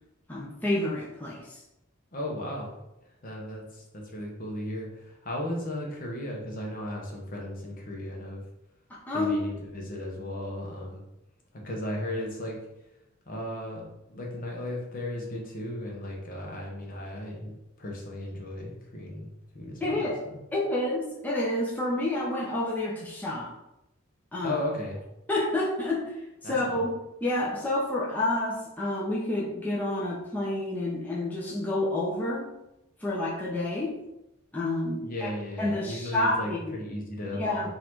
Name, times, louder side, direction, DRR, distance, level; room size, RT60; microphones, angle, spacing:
voice 1, 0.3-1.6 8.9-9.3 19.8-20.2 20.5-23.5 24.3-24.6 25.3-26.9 27.2-32.5 33.0-34.0 34.5-35.3 35.6-36.8 37.3-37.7, left 1 dB, 10° left, -6 dB, 0.7 m, -29 dB
voice 2, 2.1-2.7 3.2-8.4 9.1-11.0 11.6-12.6 13.3-17.5 17.8-19.3 19.5-20.1 24.4-25.0 26.4-26.8 35.0-37.7, left 1 dB, 45° left, -1 dB, 1.0 m, -35 dB
4.0 x 2.7 x 4.5 m, 0.89 s
head